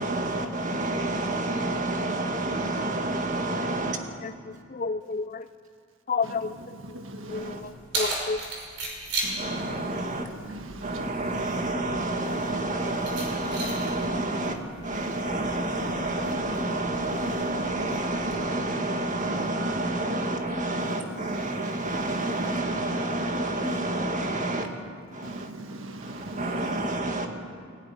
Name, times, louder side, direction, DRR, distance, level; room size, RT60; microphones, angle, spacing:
voice 1, 0.0-4.0 7.2-7.6 9.4-10.3 10.8-24.7 25.1-25.5 26.0-27.3, right 2 dB, 40° right, 1.9 m, -29 dB
voice 2, 4.2-5.5 6.1-7.0 7.3-8.5 25.2-25.3, left 4 dB, 40° left, 0.5 m, -31 dB
voice 3, 6.2-7.7 9.2-11.7 14.9-16.0 20.8-22.6 23.6-23.8 25.2-27.0, right 1 dB, 85° right, 1.4 m, -41 dB
Keys jangling, 7.3-18.3, right 2 dB, 60° right, 5.4 m, -38 dB
19.0 x 16.0 x 9.8 m
head